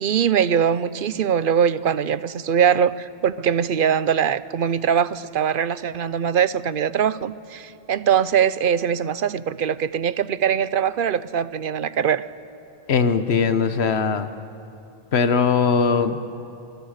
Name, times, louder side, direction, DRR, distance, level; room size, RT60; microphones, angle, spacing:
voice 1, 0.0-12.2, right 8 dB, 60° right, 16 dB, 0.8 m, -22 dB
voice 2, 12.9-14.3 15.1-16.4, left 5 dB, 80° left, 9 dB, 1.3 m, -20 dB
26.5 x 21.5 x 6.6 m, 2.7 s
omnidirectional pair, 1.1 m